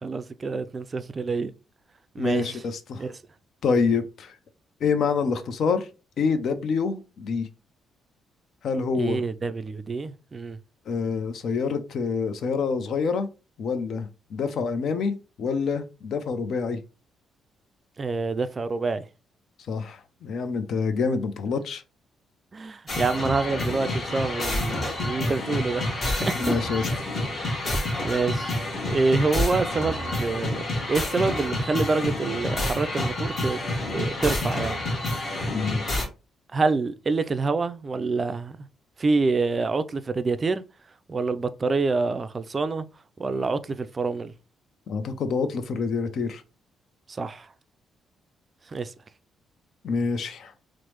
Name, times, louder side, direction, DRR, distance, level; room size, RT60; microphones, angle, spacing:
voice 1, 0.0-1.5 2.2-2.6 3.0-3.1 9.0-10.6 18.0-19.1 22.5-26.6 27.3-28.6 28.9-33.6 33.9-34.8 36.5-38.6 39.0-40.6 41.1-42.9 43.2-44.3 47.2-47.5 48.7-48.9, right 4 dB, 35° right, 0.3 m, -27 dB
voice 2, 2.2-3.0 3.6-4.3 4.8-5.9 6.2-7.5 8.6-9.2 10.9-13.3 13.6-16.8 19.7-21.8 26.3-26.9 35.5-35.8 44.9-46.4 49.8-50.5, left 5 dB, 65° left, 0.5 m, -26 dB
sound 1, 22.9-36.1, left 1 dB, 40° left, 1.1 m, -28 dB
3.1 x 2.0 x 2.9 m
cardioid pair, 90°, 0 cm